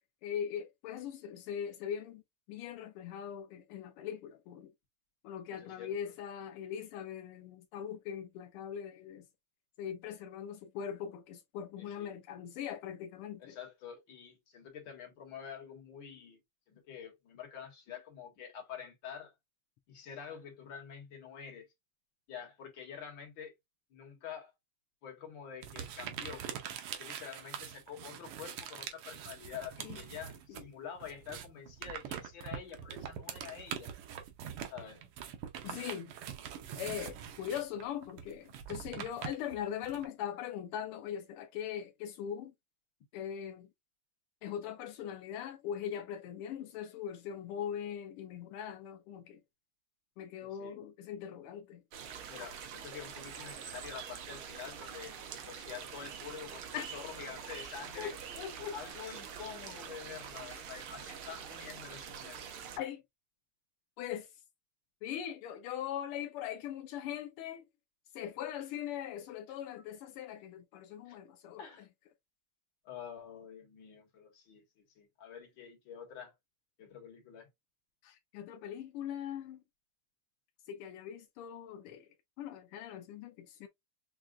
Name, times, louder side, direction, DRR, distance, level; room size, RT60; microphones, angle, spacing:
voice 1, 0.2-2.2 2.5-4.7 5.2-9.3 9.8-13.6 29.8-30.0 30.5-30.7 35.6-36.1 36.8-42.5 43.1-43.7 44.4-49.4 50.2-51.8 56.7-56.9 58.0-58.7 60.5-60.6 62.8-63.0 64.0-64.4 65.0-67.6 68.1-71.6 78.0-79.6 80.7-82.1 82.4-83.7, left 9 dB, 90° left, 1.5 m, -41 dB
voice 2, 5.5-6.1 11.8-12.1 13.4-16.4 16.7-19.3 19.9-21.7 22.3-23.5 23.9-24.5 25.0-26.5 27.0-33.9 34.7-35.1 50.4-50.8 52.3-55.2 55.4-58.2 58.7-62.4 71.1-71.2 71.6-71.9 72.9-76.3 76.8-77.5, left 7 dB, 60° left, 2.2 m, -47 dB
sound 1, 25.6-30.7 31.0-40.1, right 9 dB, 90° right, 1.7 m, -44 dB
sound 2, 51.9-62.8, right 7 dB, 75° right, 1.7 m, -45 dB
6.1 x 2.3 x 2.4 m
omnidirectional pair, 2.4 m